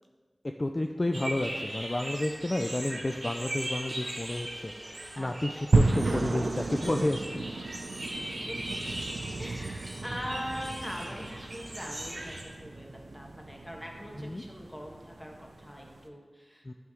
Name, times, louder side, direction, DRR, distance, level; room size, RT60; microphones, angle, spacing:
voice 1, 0.6-4.7 5.2-7.4 14.2-14.4 16.7-16.8, left 1 dB, 35° left, 4 dB, 0.4 m, -31 dB
sound 1, 1.1-12.4, right 1 dB, 60° right, 1.5 m, -39 dB
sound 2, 5.7-16.0, right 3 dB, 85° right, 0.5 m, -33 dB
voice 2, 8.2-8.8 9.4-12.9 13.1-16.7, equal, 10° left, 0 dB, 1.4 m, -41 dB
9.5 x 3.5 x 6.3 m, 1.5 s
wide cardioid pair, 50°, 0 cm